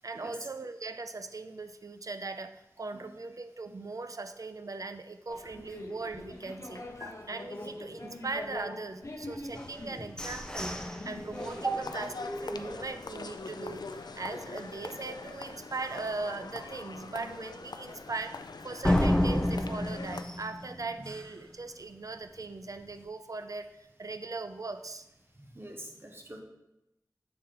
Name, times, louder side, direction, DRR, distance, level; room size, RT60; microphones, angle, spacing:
voice 1, 0.0-12.1 12.4-25.1, right 3 dB, 55° right, 9 dB, 0.4 m, -39 dB
sound 1, 5.3-11.9, left 1 dB, 50° left, 0.8 m, -44 dB
sound 2, 9.6-13.4 13.9-14.0 14.4-14.8 15.2-15.3 15.7-15.8 18.8-21.5, left 1 dB, 10° left, 0.6 m, -32 dB
sound 3, 11.4-20.2, left 4 dB, 80° left, 0.4 m, -43 dB
voice 2, 25.5-26.4, right 3 dB, 35° right, 1 dB, 1.1 m, -37 dB
6.7 x 4.2 x 3.7 m, 0.91 s
wide cardioid pair, 55°, 7 cm